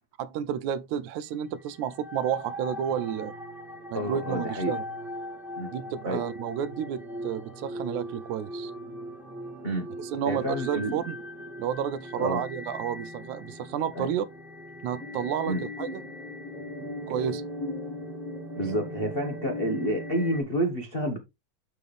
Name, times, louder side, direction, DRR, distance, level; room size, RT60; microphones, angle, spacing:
voice 1, 0.2-3.3 3.9-4.8 5.7-8.7 10.0-11.2 11.6-14.3 14.8-16.0 17.1-17.4, right 9 dB, 80° right, 2.0 m, -31 dB
sound 1, 1.5-20.4, left 1 dB, ahead, 0.7 m, -39 dB
voice 2, 3.9-4.7 5.6-5.7 6.0-6.2 9.6-9.8 10.3-10.9 12.2-12.4 14.0-14.1 15.5-15.6 18.5-21.2, equal, 80° left, 0.5 m, -29 dB
7.0 x 6.2 x 3.4 m
omnidirectional pair, 3.4 m